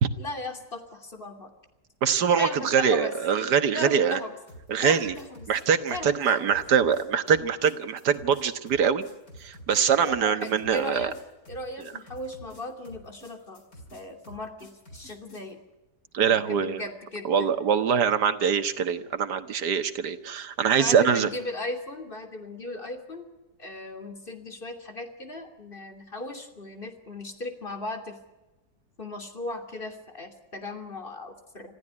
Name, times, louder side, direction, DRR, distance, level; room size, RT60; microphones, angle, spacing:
voice 1, 0.2-1.5 2.3-3.2 3.7-4.3 4.8-5.5 5.9-6.6 10.0-11.2 11.5-13.6 13.9-15.6 16.2-17.5 20.7-23.3 23.6-28.2 29.0-31.7, left 2 dB, 30° left, 7 dB, 3.1 m, -37 dB
voice 2, 2.0-4.2 4.7-5.1 5.5-9.0 9.4-11.1 16.1-16.8 17.3-21.3, right 7 dB, 85° right, 11 dB, 1.9 m, -23 dB
sound 1, 4.5-15.5, equal, 60° left, 5.2 m, -49 dB
26.5 x 15.0 x 9.8 m, 1.1 s
omnidirectional pair, 1.7 m